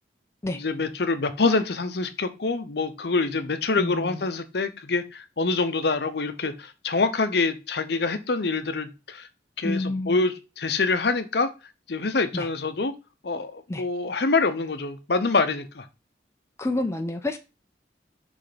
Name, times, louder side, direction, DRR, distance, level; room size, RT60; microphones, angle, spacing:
voice 1, 0.5-9.3 9.6-11.5 11.9-12.9 13.2-15.9, left 3 dB, 60° left, 0.7 m, -25 dB
voice 2, 3.8-4.3 9.6-10.2 12.3-12.5 13.7-13.9 16.6-17.4, left 2 dB, 15° left, 0.4 m, -29 dB
6.2 x 3.4 x 5.0 m
head